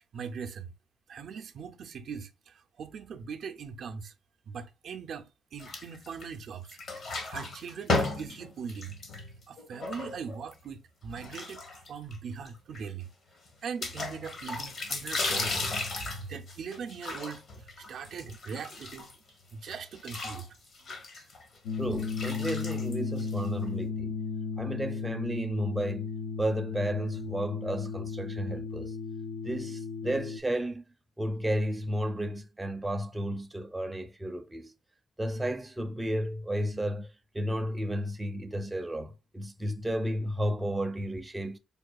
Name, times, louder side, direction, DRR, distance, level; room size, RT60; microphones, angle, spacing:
voice 1, 0.1-0.7 1.1-4.1 4.5-6.8 7.1-8.9 9.5-11.6 11.9-13.1 13.6-15.7 16.3-19.1 19.5-20.5 20.9-21.0, right 6 dB, 65° right, 0.4 m, -41 dB
sound 1, 5.6-6.4 6.7-10.5 11.2-12.2 12.5-12.6 12.7-12.8 13.8-19.3 19.6-23.6, left 3 dB, 55° left, 1.0 m, -35 dB
sound 2, 21.7-30.4, left 5 dB, 85° left, 0.5 m, -35 dB
voice 2, 21.8-24.2 24.6-26.1 26.4-28.9 29.4-30.8 31.2-34.7 35.2-37.1 37.3-41.6, equal, 10° right, 0.5 m, -32 dB
5.3 x 2.3 x 2.3 m
cardioid pair, 90°, 0 cm